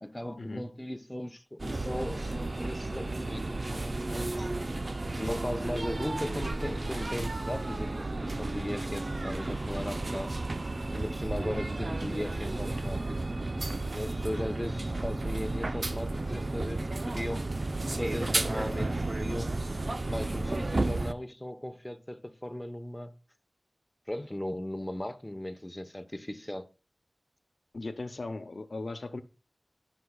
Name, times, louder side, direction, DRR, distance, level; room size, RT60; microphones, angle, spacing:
voice 1, 0.0-4.5 5.2-10.4 10.9-13.2 13.9-17.5 18.0-19.6 20.1-23.1 24.1-26.7, left 1 dB, 15° left, 0.9 m, -37 dB
sound 1, 1.6-21.1, right 2 dB, 55° right, 0.5 m, -33 dB
voice 2, 27.7-29.2, left 2 dB, 80° left, 0.7 m, -38 dB
16.5 x 5.9 x 2.3 m
wide cardioid pair, 50°, 0 cm